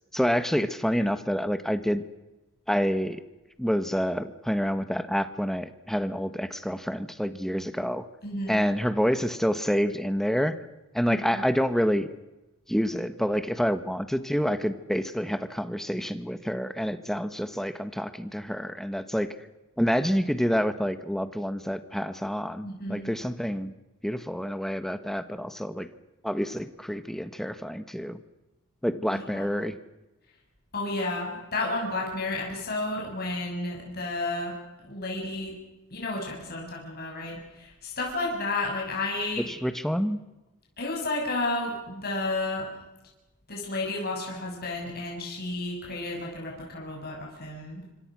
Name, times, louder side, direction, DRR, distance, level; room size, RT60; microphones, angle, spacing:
voice 1, 0.1-2.0 2.7-3.2 3.6-8.0 8.5-10.6 10.9-12.1 12.7-19.3 19.8-23.7 24.0-25.9 26.2-28.2 28.8-29.8 39.5-40.2, equal, ahead, 11 dB, 1.4 m, -28 dB
voice 2, 8.2-8.6 11.1-11.4 22.6-23.1 29.1-29.5 30.7-34.5 34.8-35.5 35.9-39.5 40.8-42.7 43.5-47.8, left 2 dB, 45° left, -1 dB, 6.9 m, -32 dB
26.5 x 25.5 x 6.2 m, 1.0 s
head